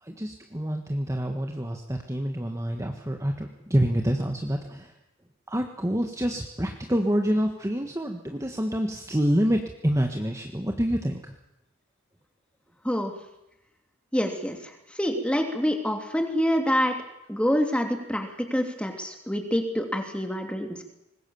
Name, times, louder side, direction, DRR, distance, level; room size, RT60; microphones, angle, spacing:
voice 1, 0.0-4.9 5.5-11.3, equal, 15° right, 3 dB, 1.5 m, -27 dB
voice 2, 14.1-14.6 15.0-17.0 17.3-20.8, equal, 5° left, 4 dB, 2.8 m, -26 dB
24.5 x 20.5 x 7.2 m, 0.87 s
head